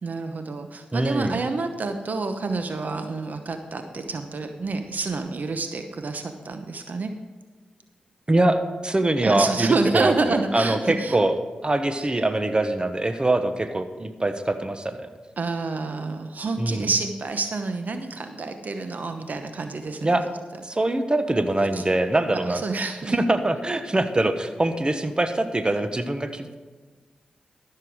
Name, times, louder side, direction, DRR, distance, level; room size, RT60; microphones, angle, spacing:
voice 1, 0.0-7.1 9.2-11.2 15.4-20.2 21.7-21.8 22.5-23.2, right 3 dB, 65° right, 7 dB, 0.9 m, -28 dB
voice 2, 0.9-1.4 8.3-11.4 11.6-15.0 16.6-16.9 20.0-20.2 20.6-22.6 23.1-26.6, right 2 dB, 30° right, 8 dB, 1.1 m, -23 dB
13.5 x 6.9 x 4.7 m, 1.4 s
cardioid pair, 40°, 3 cm